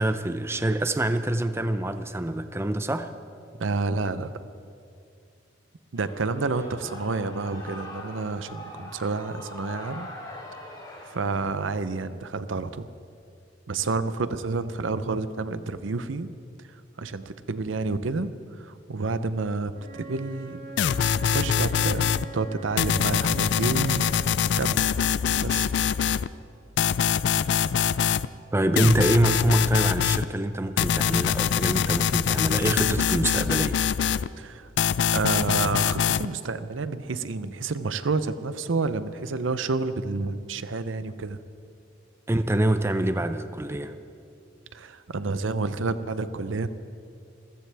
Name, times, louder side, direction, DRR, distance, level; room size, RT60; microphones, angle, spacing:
voice 1, 0.0-3.1 28.5-33.8 42.3-43.9, right 1 dB, 15° right, 9 dB, 0.5 m, -25 dB
voice 2, 3.6-4.3 5.9-10.1 10.5-10.8 11.0-12.9 13.7-16.3 17.0-20.6 21.2-24.1 24.6-24.9 25.4-25.7 34.4-34.7 35.1-41.4 44.7-46.7, right 3 dB, 80° right, 12 dB, 0.6 m, -29 dB
Shout / Cheering, 6.0-11.4, left 1 dB, 20° left, 3.4 m, -42 dB
Wind instrument woodwind instrument, 19.7-24.5, right 4 dB, 60° right, 2.4 m, -42 dB
sound 1, 20.8-22.2 22.8-26.3 26.8-28.3 28.8-30.2 30.8-34.3 34.8-36.3, left 8 dB, 65° left, 0.4 m, -24 dB
27.0 x 15.0 x 3.4 m, 2.4 s
head